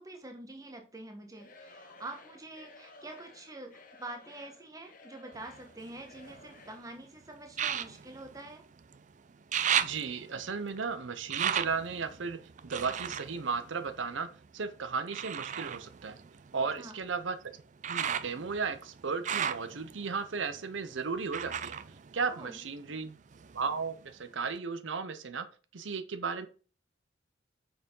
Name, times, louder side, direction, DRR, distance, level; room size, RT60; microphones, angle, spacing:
voice 1, 0.0-8.6 16.5-17.0 22.2-23.0, right 2 dB, 20° right, 4 dB, 1.2 m, -46 dB
Singing / Crowd, 1.3-7.0, left 3 dB, 45° left, 1.2 m, -55 dB
sound 1, 5.3-6.7 7.5-9.0 9.3-14.5 15.1-22.9 23.3-24.1 24.6-24.7, right 8 dB, 40° right, 0.4 m, -36 dB
voice 2, 9.8-14.3 14.5-16.2 16.5-17.4 17.9-21.7 22.1-23.2 23.5-25.5 25.7-26.5, right 5 dB, 80° right, 11 dB, 0.7 m, -35 dB
6.3 x 4.8 x 5.4 m, 0.38 s
head